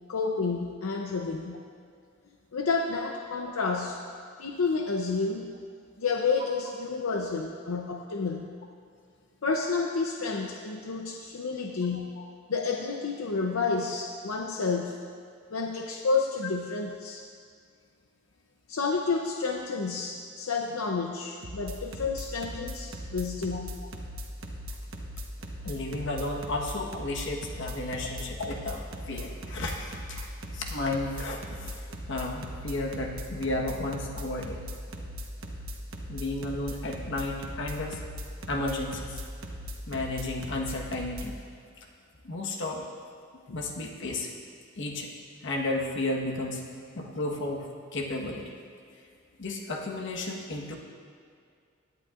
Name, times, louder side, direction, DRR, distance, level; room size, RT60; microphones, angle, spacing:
voice 1, 0.1-1.6 2.5-4.0 4.4-5.5 6.0-8.5 9.4-12.1 12.5-15.0 15.5-17.2 18.7-23.8 43.5-43.6, left 4 dB, 85° left, 2 dB, 0.7 m, -30 dB
sound 1, 21.4-41.3, equal, 70° right, 1.1 m, -39 dB
voice 2, 25.6-34.6 36.1-38.0 38.5-39.2 39.9-41.4 42.2-42.8 43.5-44.3 44.7-45.1 45.4-46.7 46.9-48.5 49.4-50.8, left 2 dB, 60° left, 0 dB, 1.3 m, -33 dB
17.0 x 11.0 x 2.5 m, 2.2 s
head